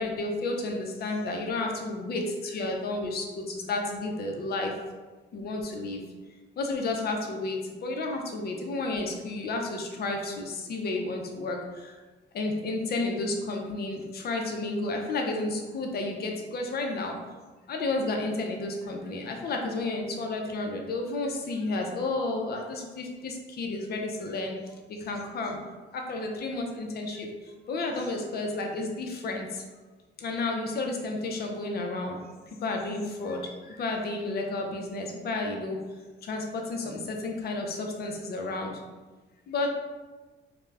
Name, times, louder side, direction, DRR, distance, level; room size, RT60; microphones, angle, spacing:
voice 1, 0.0-4.8 5.3-6.1 6.6-12.0 12.3-17.1 17.7-25.6 25.9-29.6 30.2-32.2 32.6-35.8 36.2-38.8 39.5-39.7, left 2 dB, 50° left, 2 dB, 0.5 m, -32 dB
2.3 x 2.1 x 3.2 m, 1.3 s
cardioid pair, 90°, 20 cm